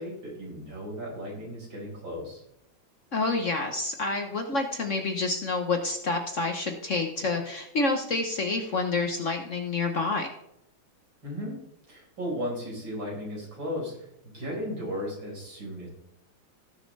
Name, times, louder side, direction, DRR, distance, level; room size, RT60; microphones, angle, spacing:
voice 1, 0.0-2.4 11.2-11.6 11.9-15.9, equal, 75° right, -4 dB, 5.3 m, -35 dB
voice 2, 3.1-10.3, left 3 dB, 50° left, 4 dB, 1.1 m, -28 dB
17.0 x 6.8 x 3.3 m, 0.78 s
omnidirectional pair, 2.1 m